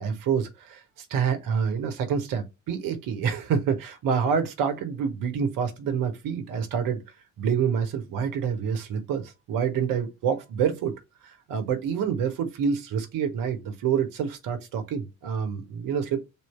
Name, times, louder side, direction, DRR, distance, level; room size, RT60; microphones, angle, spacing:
voice 1, 0.0-7.0 7.4-10.9 11.2-16.2, right 7 dB, 50° right, 1.3 m, -27 dB
3.5 x 3.1 x 4.4 m
figure-of-eight pair, 55°, 43 cm